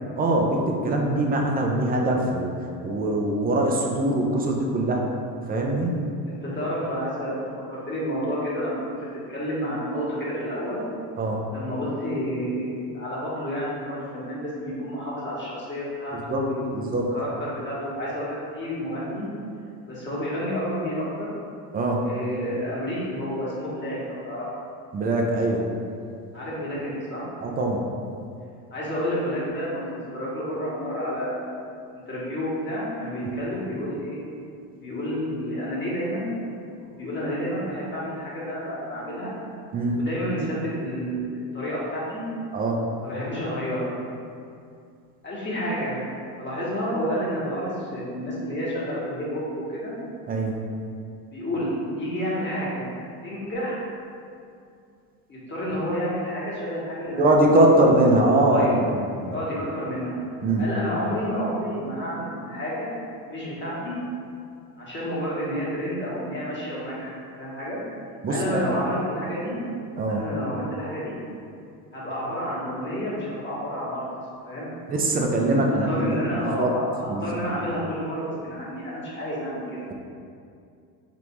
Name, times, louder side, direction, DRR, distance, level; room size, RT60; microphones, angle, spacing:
voice 1, 0.2-2.5 2.8-5.1 5.5-6.0 11.2-11.4 16.3-16.4 16.7-17.1 21.7-22.1 24.9-25.6 27.4-27.8 39.7-40.0 42.5-42.8 50.3-50.6 57.2-59.3 60.4-60.6 68.2-68.7 70.0-70.2 74.9-76.7 77.1-77.4, right 1 dB, 20° right, 0 dB, 0.4 m, -22 dB
voice 2, 6.2-9.0 9.3-10.8 11.5-19.3 19.8-21.3 22.0-24.5 26.3-27.3 28.7-31.5 31.9-34.2 34.8-36.3 36.8-39.3 39.9-42.2 43.0-43.9 45.2-46.0 46.4-49.9 51.3-53.0 53.2-53.8 55.3-57.3 58.1-58.8 59.3-60.1 60.6-62.9 63.3-64.0 64.8-67.8 68.3-69.6 70.1-71.1 71.9-74.0 74.4-74.7 75.9-79.8, equal, 25° left, -8 dB, 1.5 m, -30 dB
3.5 x 2.5 x 4.4 m, 2.4 s
supercardioid pair, 100°, 47 cm